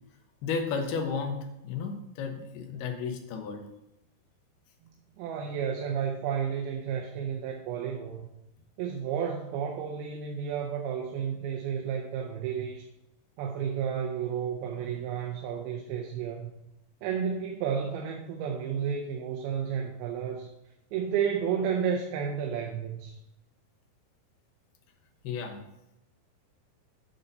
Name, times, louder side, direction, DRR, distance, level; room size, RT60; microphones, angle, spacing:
voice 1, 0.4-1.4 1.6-3.7 25.2-25.6, left 5 dB, 90° left, 4 dB, 3.0 m, -33 dB
voice 2, 5.2-8.3 8.8-12.8 13.4-16.5 17.0-20.5 20.9-23.2, right 7 dB, 80° right, 2 dB, 2.6 m, -32 dB
9.4 x 4.1 x 5.4 m, 0.88 s
omnidirectional pair, 4.4 m